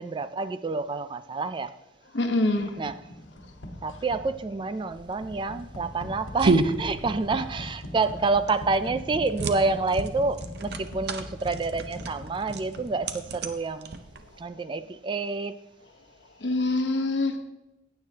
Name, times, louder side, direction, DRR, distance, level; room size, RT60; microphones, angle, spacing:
voice 1, 0.0-1.7 2.8-3.0 3.8-14.0 14.4-15.6, right 3 dB, 25° right, 13 dB, 0.3 m, -28 dB
voice 2, 2.1-2.7 16.4-17.4, left 2 dB, 65° left, 6 dB, 1.1 m, -25 dB
sound 1, 2.6-13.5, left 1 dB, 85° left, 1.3 m, -41 dB
sound 2, 4.9-14.4, right 3 dB, 55° right, 0.7 m, -31 dB
15.5 x 9.2 x 2.8 m, 0.98 s
head